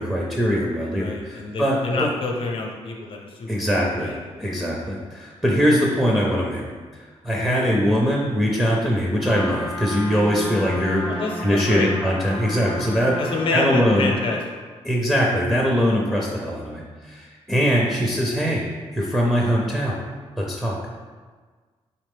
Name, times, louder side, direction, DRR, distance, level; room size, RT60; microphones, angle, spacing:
voice 1, 0.0-2.1 3.5-4.1 4.4-6.6 6.9-11.1 11.4-14.1 14.8-18.6 18.9-20.0 20.4-20.8, equal, 5° right, -3 dB, 0.5 m, -22 dB
voice 2, 1.0-4.6 7.3-7.6 11.1-11.9 13.2-14.6, left 3 dB, 55° left, 1 dB, 0.7 m, -28 dB
Trumpet, 9.2-14.5, equal, 65° right, 1.2 m, -33 dB
4.1 x 3.0 x 3.5 m, 1.5 s
wide cardioid pair, 125°, 11 cm